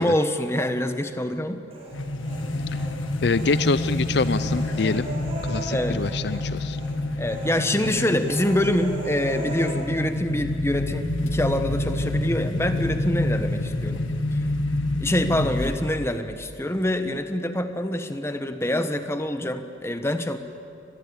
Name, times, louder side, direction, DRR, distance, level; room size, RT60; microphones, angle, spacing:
voice 1, 0.0-1.7 5.7-6.0 7.2-14.4 15.0-20.4, left 1 dB, 15° left, 8 dB, 1.1 m, -25 dB
Human voice, 1.7-2.9 3.2-6.5 6.7-6.9 7.2-9.7, right 1 dB, 30° right, 6.8 m, -37 dB
sound 1, 1.9-16.2, left 1 dB, 90° left, 1.8 m, -28 dB
voice 2, 3.2-5.1 5.4-6.8, left 4 dB, 60° left, 14 dB, 0.5 m, -25 dB
24.5 x 20.5 x 8.7 m, 2.6 s
head